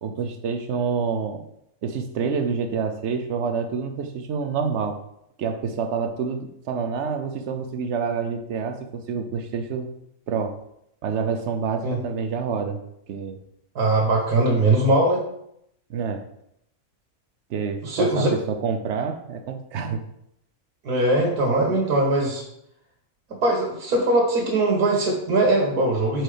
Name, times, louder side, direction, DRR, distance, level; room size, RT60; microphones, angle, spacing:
voice 1, 0.0-1.4 1.8-5.0 5.4-9.9 10.3-10.6 11.0-12.8 13.1-13.4 15.9-16.2 17.5-20.0, right 6 dB, 60° right, 6 dB, 0.8 m, -27 dB
voice 2, 13.7-15.2 17.8-18.3 20.8-22.4 23.4-26.2, right 2 dB, 75° right, -1 dB, 1.7 m, -21 dB
4.5 x 4.4 x 5.0 m, 0.76 s
omnidirectional pair, 1.6 m